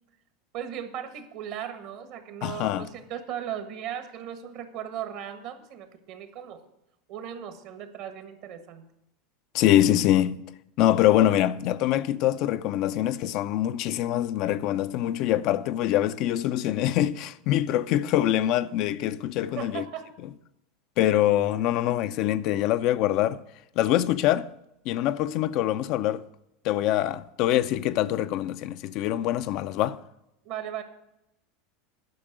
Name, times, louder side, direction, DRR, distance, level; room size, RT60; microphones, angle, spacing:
voice 1, 0.5-6.6 7.1-8.8 19.4-20.1 21.2-21.3 30.4-30.8, right 9 dB, 60° right, 1.5 m, -37 dB
voice 2, 2.4-2.9 9.5-10.4 10.8-19.8 21.0-23.4 23.8-24.5 24.9-26.2 26.6-30.0, left 13 dB, 55° left, 0.5 m, -24 dB
10.5 x 5.9 x 7.8 m
hypercardioid pair, 90°, 0 cm